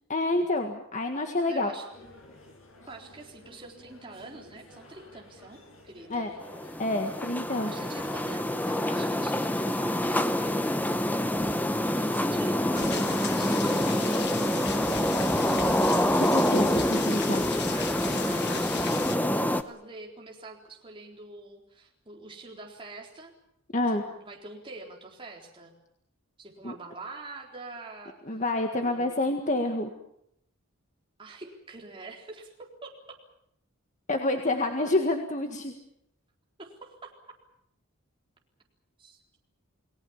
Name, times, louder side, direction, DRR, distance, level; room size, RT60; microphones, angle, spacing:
voice 1, 0.1-1.7 6.1-6.3 6.8-7.7 16.1-17.6 23.7-24.0 26.6-26.7 28.3-29.9 34.1-35.7, left 2 dB, 35° left, 4 dB, 1.8 m, -28 dB
voice 2, 1.5-1.9 2.9-6.3 7.6-11.2 12.1-14.9 17.7-23.3 24.1-25.7 26.4-28.2 28.7-29.3 31.2-33.2 34.8-34.9 36.6-37.1 39.0-39.2, right 2 dB, 25° right, -1 dB, 4.0 m, -45 dB
sound 1, 1.9-17.1, left 1 dB, 70° left, 7.4 m, -51 dB
sound 2, 6.4-19.6, left 1 dB, 10° left, 0.9 m, -26 dB
sound 3, 12.7-19.2, left 7 dB, 50° left, 1.4 m, -37 dB
29.5 x 19.5 x 7.3 m, 0.75 s
head